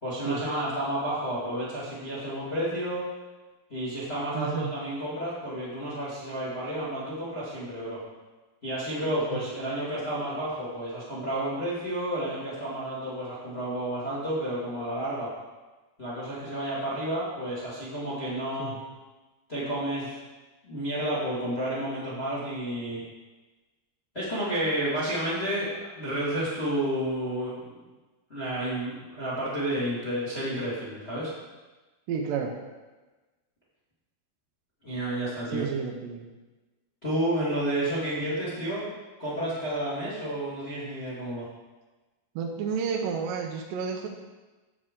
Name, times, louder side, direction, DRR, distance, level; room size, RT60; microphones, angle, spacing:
voice 1, 0.0-3.1 3.7-8.1 8.6-15.3 16.0-18.8 19.5-20.1 20.6-23.0 24.1-27.8 28.3-31.3 34.8-35.7 37.0-38.9 39.2-41.5, right 1 dB, 20° left, -8 dB, 1.8 m, -31 dB
voice 2, 4.3-4.7 9.3-9.4 18.6-18.8 32.1-32.5 35.5-36.3 42.4-44.1, right 6 dB, 75° right, 1 dB, 2.3 m, -31 dB
9.8 x 7.5 x 3.7 m, 1.2 s
omnidirectional pair, 4.3 m